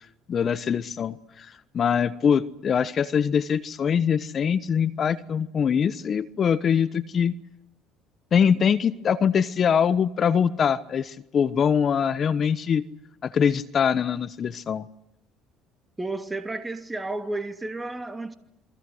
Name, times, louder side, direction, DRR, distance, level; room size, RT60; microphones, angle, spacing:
voice 1, 0.3-7.3 8.3-12.9 13.2-14.9, left 7 dB, 45° left, 1.1 m, -23 dB
voice 2, 16.0-18.3, right 2 dB, 15° right, 2.7 m, -32 dB
28.0 x 23.5 x 8.0 m
supercardioid pair, 80°, 0 cm